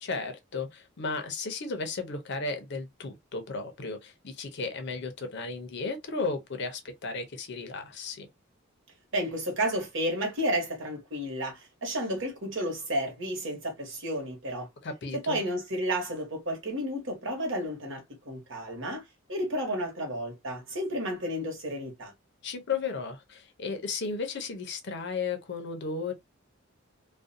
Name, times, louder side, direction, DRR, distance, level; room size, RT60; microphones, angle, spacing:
voice 1, 0.0-8.3 14.8-15.4 22.4-26.1, left 4 dB, 55° left, 0.6 m, -34 dB
voice 2, 9.1-14.7 15.1-19.0 19.3-22.1, equal, 65° right, 1.2 m, -32 dB
2.5 x 2.2 x 2.5 m
head